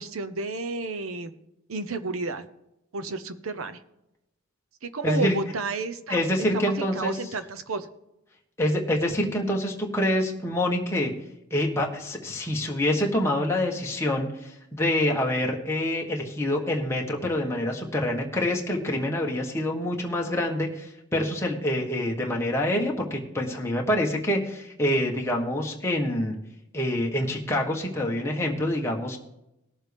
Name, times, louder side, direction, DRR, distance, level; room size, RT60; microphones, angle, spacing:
voice 1, 0.0-1.3 1.7-2.4 2.9-3.8 4.8-7.9, right 3 dB, 85° right, 11 dB, 0.9 m, -31 dB
voice 2, 5.0-5.4 6.1-7.1 8.6-11.1 11.5-26.3 26.7-29.2, left 1 dB, 10° left, -1 dB, 1.4 m, -26 dB
19.0 x 7.3 x 3.5 m, 0.88 s
head